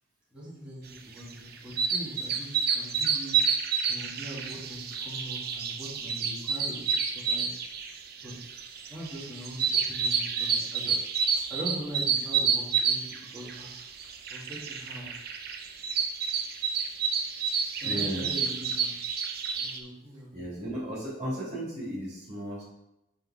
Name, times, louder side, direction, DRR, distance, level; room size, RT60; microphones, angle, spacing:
voice 1, 0.3-3.4 3.9-6.8 7.1-7.5 8.2-8.3 8.9-10.9 11.3-13.7 14.3-15.1 17.8-19.0 19.5-20.3, equal, 5° right, -10 dB, 2.2 m, -41 dB
sound 1, 1.1-19.8, right 6 dB, 55° right, 0.7 m, -30 dB
voice 2, 17.8-18.4 20.3-22.6, right 1 dB, 35° right, -6 dB, 2.7 m, -35 dB
5.7 x 5.4 x 4.9 m, 0.86 s
head